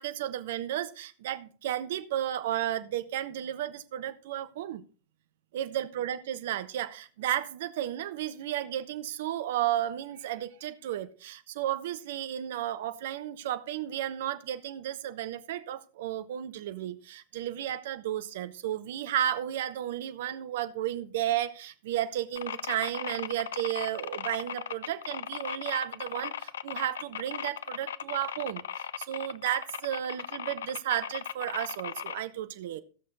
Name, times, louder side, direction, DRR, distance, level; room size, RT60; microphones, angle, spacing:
voice 1, 0.0-4.8 5.5-32.8, right 12 dB, 55° right, 11 dB, 0.7 m, -33 dB
sound 1, 22.4-32.2, left 9 dB, 65° left, 0.4 m, -37 dB
15.5 x 6.5 x 4.0 m, 0.38 s
figure-of-eight pair, 90°, 0 cm